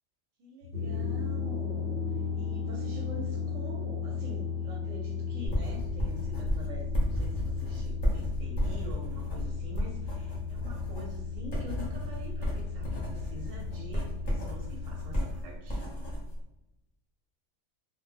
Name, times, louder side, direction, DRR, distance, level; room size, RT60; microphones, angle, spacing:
voice 1, 0.4-2.0 2.3-15.8, equal, 90° right, -1 dB, 1.0 m, -45 dB
sound 1, 0.6-15.4, left 6 dB, 65° right, 0.8 m, -35 dB
sound 2, 5.4-16.4, equal, 35° left, 0.8 m, -33 dB
2.2 x 2.1 x 3.2 m, 0.92 s
omnidirectional pair, 1.3 m